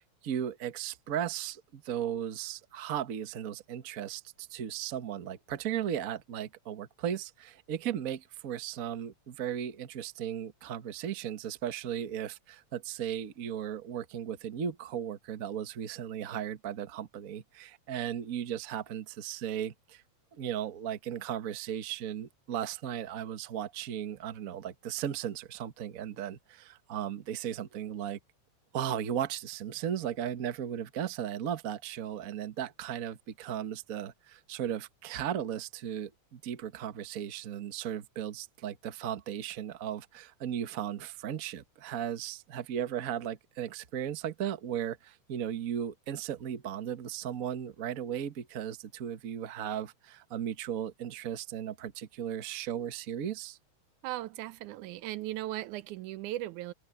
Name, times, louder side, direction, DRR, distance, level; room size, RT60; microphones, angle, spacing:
voice 1, 0.0-20.0 20.3-28.2 28.7-53.6, right 10 dB, 55° right, 0.9 m, -36 dB
voice 2, 54.0-56.7, right 15 dB, 90° right, 2.2 m, -37 dB
omnidirectional pair, 3.4 m